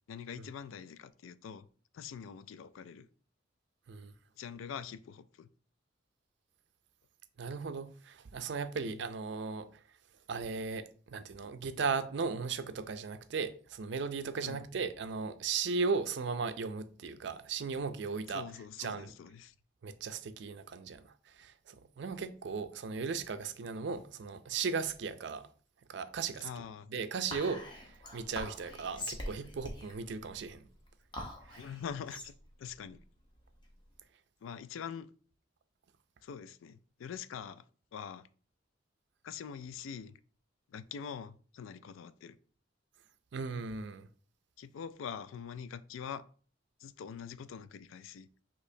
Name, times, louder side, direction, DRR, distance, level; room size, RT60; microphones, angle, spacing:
voice 1, 0.1-1.7 1.9-3.1 4.4-5.5 8.8-9.0 14.4-14.6 18.3-19.5 26.4-26.9 31.6-32.3 32.6-33.0 34.4-35.1 36.2-37.6 37.9-38.3 39.2-40.2 40.7-42.4 44.6-46.3 46.8-48.3, left 7 dB, 80° left, 0.3 m, -44 dB
voice 2, 7.4-9.7 10.3-18.5 18.8-19.1 19.8-25.5 25.9-26.5 26.9-30.6 31.5-31.6 43.3-44.1, right 5 dB, 60° right, 0.4 m, -37 dB
Whispering, 27.3-34.0, left 1 dB, 25° left, 0.9 m, -44 dB
6.1 x 2.9 x 2.7 m
head